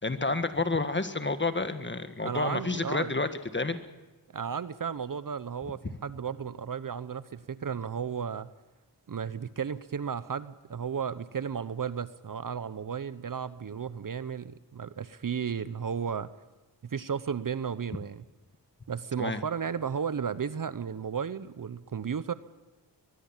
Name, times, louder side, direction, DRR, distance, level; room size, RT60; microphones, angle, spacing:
voice 1, 0.0-3.3 3.5-3.8 19.2-19.4, left 3 dB, 25° left, 9 dB, 1.6 m, -29 dB
voice 2, 2.2-3.1 4.3-8.5 9.1-16.3 16.8-18.2 18.9-22.3, right 7 dB, 50° right, 15 dB, 0.9 m, -34 dB
22.0 x 21.5 x 7.4 m, 1.1 s
cardioid pair, 65°, 43 cm